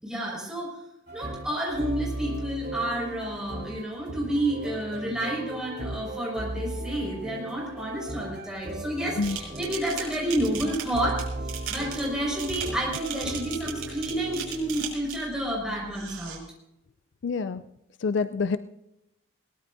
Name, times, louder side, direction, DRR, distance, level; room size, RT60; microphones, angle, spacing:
voice 1, 0.0-0.8 1.1-11.2 11.7-16.4, right 1 dB, 5° right, -3 dB, 5.4 m, -30 dB
sound 1, 1.1-14.9, right 1 dB, 50° right, 3.9 m, -37 dB
sound 2, 9.2-15.3 15.9-16.4, right 8 dB, 80° right, 5.2 m, -37 dB
voice 2, 17.2-17.6 18.0-18.6, left 4 dB, 55° left, 12 dB, 0.4 m, -26 dB
21.5 x 18.5 x 2.7 m, 0.88 s
head